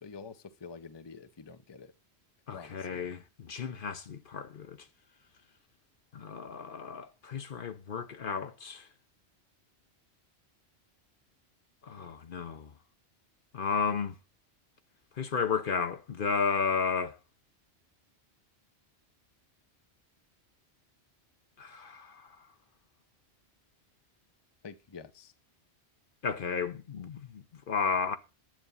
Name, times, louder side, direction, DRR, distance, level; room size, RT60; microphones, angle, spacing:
voice 1, 0.0-1.9 2.5-3.0 24.6-25.3, left 5 dB, 30° left, 0.6 m, -47 dB
voice 2, 2.5-3.2 3.5-4.8 6.1-8.9 11.9-12.7 13.5-14.1 15.2-17.2 21.6-22.3 26.2-28.2, left 5 dB, 55° left, 0.9 m, -33 dB
10.5 x 8.1 x 5.5 m
omnidirectional pair, 1.1 m